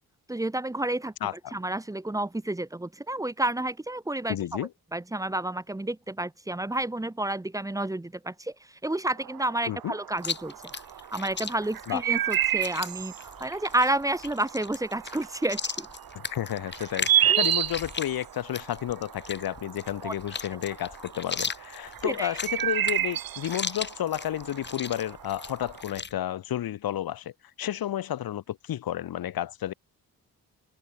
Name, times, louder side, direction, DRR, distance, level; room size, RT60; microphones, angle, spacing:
voice 1, 0.3-1.1 1.5-4.6 4.9-8.5 8.8-10.5 11.1-13.1 13.4-15.9 17.3-17.5 20.0-20.1 22.0-22.3, right 1 dB, 10° right, 1.2 m, -30 dB
voice 2, 1.2-1.5 4.3-4.7 9.7-9.9 11.9-12.0 16.1-27.3 27.6-29.7, left 12 dB, 65° left, 1.2 m, -31 dB
sound 1, 9.2-25.8, right 11 dB, 65° right, 1.4 m, -31 dB
Chewing mastication, 10.2-26.1, left 5 dB, 30° left, 1.8 m, -38 dB
wide cardioid pair, 170°, 38 cm